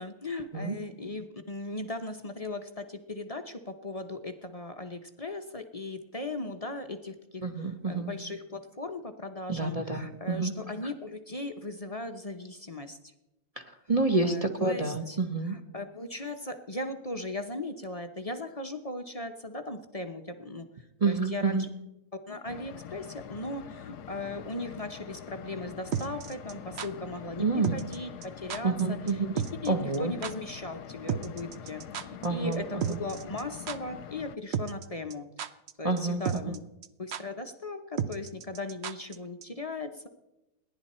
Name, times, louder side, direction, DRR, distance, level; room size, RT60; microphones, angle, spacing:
voice 1, 0.0-7.4 7.9-13.0 14.2-15.2 15.5-20.7 21.0-21.7 22.3-27.5 27.7-29.0 29.6-35.5 35.8-36.6 37.0-40.1, left 2 dB, 40° left, 6 dB, 0.5 m, -38 dB
voice 2, 7.4-8.1 9.5-10.5 10.8-10.9 13.6-15.6 21.0-21.7 27.4-27.8 28.6-29.4 29.7-30.1 32.2-33.0 35.8-36.6, right 3 dB, 25° right, 4 dB, 0.8 m, -29 dB
sound 1, 22.4-34.4, left 8 dB, 65° left, 1.2 m, -45 dB
sound 2, 25.9-26.9 27.6-28.0 28.2-28.3 28.5-28.8 29.1-29.2 29.4-29.7 29.9-30.0 30.2-30.3 31.1-32.3 32.5-32.6 32.8-33.4 33.7-33.8 34.5-34.9 35.1-35.7 36.0-36.1 36.3-36.6 36.8-36.9 37.1-37.2 38.0-39.2 39.4-39.5, right 8 dB, 70° right, 0.6 m, -32 dB
29.5 x 11.0 x 4.4 m, 0.98 s
omnidirectional pair, 2.1 m